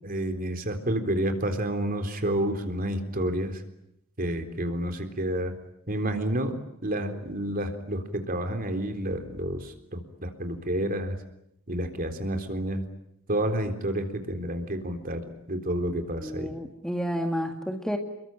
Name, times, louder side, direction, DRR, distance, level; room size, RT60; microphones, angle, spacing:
voice 1, 0.0-3.6 4.2-5.5 5.9-6.5 6.8-11.2 11.7-12.8 13.3-16.5, right 1 dB, 45° right, 6 dB, 3.7 m, -29 dB
voice 2, 16.2-18.0, equal, 5° left, 4 dB, 2.1 m, -30 dB
28.5 x 22.5 x 9.1 m, 0.78 s
head